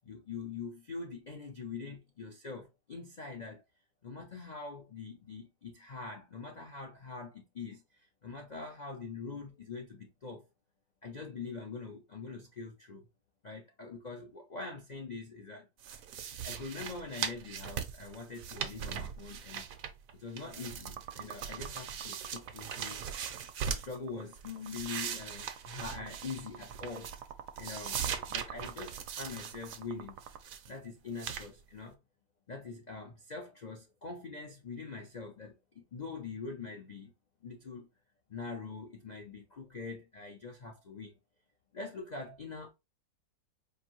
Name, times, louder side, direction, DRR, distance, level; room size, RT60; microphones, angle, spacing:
voice 1, 0.0-3.6 4.0-10.4 11.0-13.1 13.4-15.7 16.4-19.7 20.1-23.0 23.6-27.1 27.6-28.0 28.3-30.2 30.7-32.0 32.5-37.1 37.4-37.9 38.3-41.1 41.7-42.7, left 4 dB, 60° left, 0.4 m, -43 dB
sound 1, 15.8-20.1 20.4-24.0 24.4-27.3 27.6-29.8 30.2-30.7 31.2-31.5, right 8 dB, 65° right, 1.0 m, -40 dB
sound 2, 20.8-30.4, right 9 dB, 90° right, 1.2 m, -47 dB
4.7 x 2.6 x 2.9 m
omnidirectional pair, 1.7 m